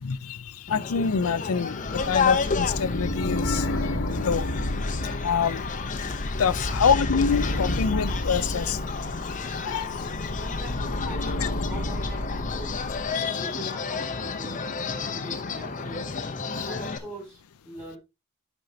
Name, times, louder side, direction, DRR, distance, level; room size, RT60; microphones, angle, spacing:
voice 1, 0.0-4.5 5.2-5.6 6.4-8.8 9.4-10.0 13.1-13.2 16.5-16.7, left 6 dB, 90° left, 0.5 m, -26 dB
sound 1, 0.7-17.0, left 5 dB, 35° left, 0.7 m, -31 dB
sound 2, 1.8-13.1, left 1 dB, 60° left, 1.0 m, -31 dB
voice 2, 10.4-12.8 13.3-16.1 16.6-18.0, right 1 dB, 10° right, 4.5 m, -42 dB
10.5 x 5.4 x 2.7 m
head